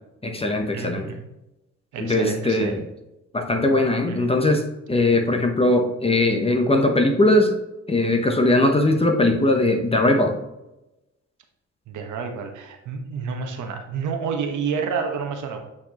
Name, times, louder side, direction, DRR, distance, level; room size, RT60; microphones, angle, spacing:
voice 1, 0.2-1.1 2.0-2.8 3.3-7.5 7.9-10.3, left 2 dB, 20° left, 4 dB, 0.9 m, -20 dB
voice 2, 0.7-1.3 1.9-2.8 4.1-4.3 11.9-15.7, right 6 dB, 75° right, 4 dB, 1.1 m, -29 dB
8.6 x 4.6 x 3.0 m, 0.95 s
cardioid pair, 90°, 30 cm